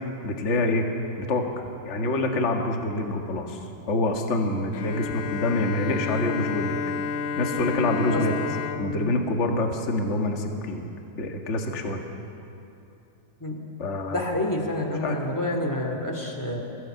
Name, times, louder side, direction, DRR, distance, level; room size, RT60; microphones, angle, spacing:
voice 1, 0.2-0.9 1.2-1.4 1.8-3.6 3.9-6.8 7.3-8.3 8.8-10.9 11.2-12.0 13.8-14.2 15.0-15.2, left 2 dB, 30° left, 3 dB, 1.3 m, -26 dB
Bowed string instrument, 4.7-10.4, left 6 dB, 75° left, 2.3 m, -31 dB
voice 2, 14.1-16.6, left 1 dB, 5° left, 2 dB, 1.8 m, -28 dB
23.0 x 17.0 x 7.9 m, 2.8 s
omnidirectional pair, 3.7 m